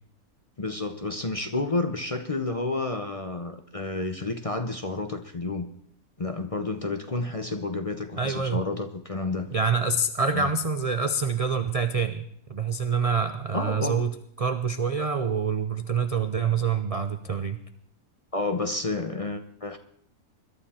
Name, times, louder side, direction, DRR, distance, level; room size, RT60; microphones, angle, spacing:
voice 1, 0.6-5.7 6.2-9.5 10.3-10.5 13.5-14.0 18.3-19.8, left 3 dB, 30° left, 7 dB, 0.7 m, -30 dB
voice 2, 8.2-8.6 9.5-12.2 12.5-17.6, right 5 dB, 50° right, 9 dB, 0.4 m, -26 dB
21.5 x 12.0 x 4.3 m, 0.67 s
omnidirectional pair, 1.6 m